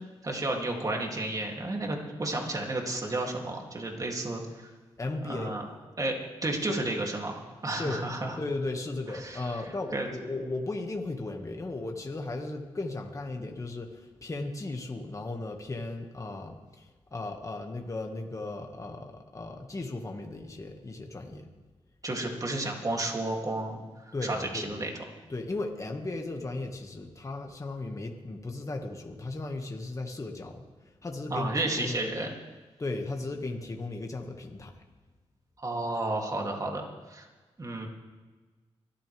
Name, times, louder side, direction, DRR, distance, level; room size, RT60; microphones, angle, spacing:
voice 1, 0.2-4.7 5.2-5.6 6.0-8.4 9.1-9.6 9.9-10.1 22.0-24.9 31.3-32.3 35.6-37.3 37.6-37.9, right 2 dB, 35° right, 0 dB, 2.9 m, -32 dB
voice 2, 5.0-5.6 7.8-8.0 8.4-16.9 17.1-21.5 24.1-24.7 25.3-32.1 32.8-34.7, left 2 dB, 30° left, 2 dB, 1.9 m, -36 dB
24.0 x 13.5 x 3.5 m, 1.3 s
cardioid pair, 75°, 11 cm